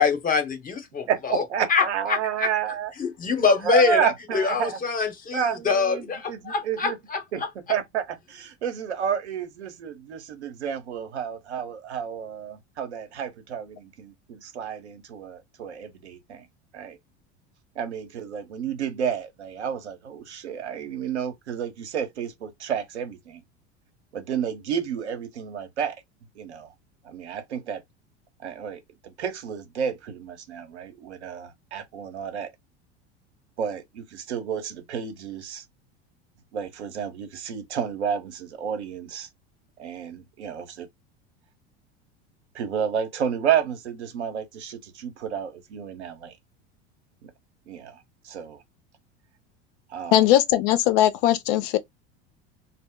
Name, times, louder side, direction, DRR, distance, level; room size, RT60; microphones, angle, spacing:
voice 1, 0.0-1.4 1.7-2.5 3.0-7.2, left 5 dB, 25° left, 0.9 m, -24 dB
voice 2, 1.1-2.9 3.6-4.8 5.3-7.0 7.3-16.5 16.7-17.0 17.7-23.4 24.1-26.0 26.3-26.7 27.0-27.8 28.4-32.5 33.6-35.6 36.5-39.3 39.8-40.9 42.5-46.3 47.2-47.3 47.7-48.6 49.9-50.2, right 8 dB, 80° right, 0.8 m, -31 dB
voice 3, 50.1-51.8, left 12 dB, 60° left, 0.6 m, -19 dB
2.0 x 2.0 x 3.6 m
hypercardioid pair, 80°, 33 cm